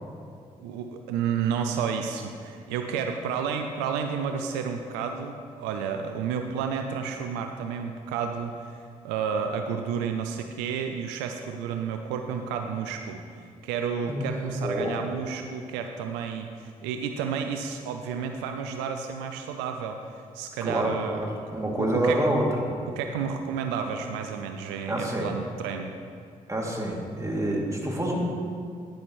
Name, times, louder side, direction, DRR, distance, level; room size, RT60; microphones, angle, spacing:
voice 1, 0.6-13.2 13.6-21.3 21.8-22.2 23.0-25.9, right 7 dB, 85° right, 5 dB, 0.5 m, -31 dB
voice 2, 14.1-14.9 20.6-22.5 24.9-25.3 26.5-28.2, right 1 dB, 20° right, -2 dB, 2.6 m, -27 dB
10.5 x 10.0 x 3.2 m, 2.3 s
hypercardioid pair, 45°, 17 cm